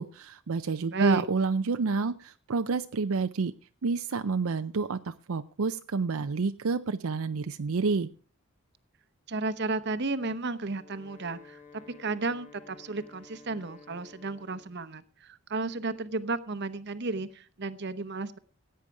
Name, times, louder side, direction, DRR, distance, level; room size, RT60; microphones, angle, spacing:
voice 1, 0.0-3.5 3.8-8.1, right 4 dB, 75° right, 9 dB, 0.6 m, -29 dB
voice 2, 0.9-1.2 9.3-18.4, right 3 dB, 50° right, 13 dB, 1.0 m, -33 dB
Wind instrument woodwind instrument, 10.6-14.8, left 4 dB, 35° left, 1.4 m, -53 dB
16.0 x 9.0 x 4.8 m, 0.39 s
head